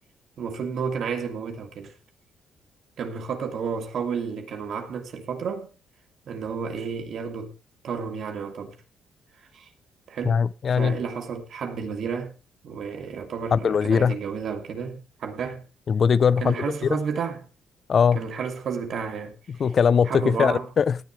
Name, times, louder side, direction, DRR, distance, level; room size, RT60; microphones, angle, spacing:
voice 1, 0.4-1.9 3.0-5.7 6.3-7.5 7.8-8.7 9.5-9.7 10.1-10.4 10.8-12.3 12.6-15.6 16.4-17.5 18.1-19.4 20.0-20.7, right 6 dB, 65° right, 2.8 m, -31 dB
voice 2, 10.3-11.0 13.5-14.2 15.9-16.5 17.9-18.2 19.6-21.0, left 6 dB, 50° left, 0.6 m, -20 dB
18.0 x 10.5 x 3.2 m
cardioid pair, 90°, 0 cm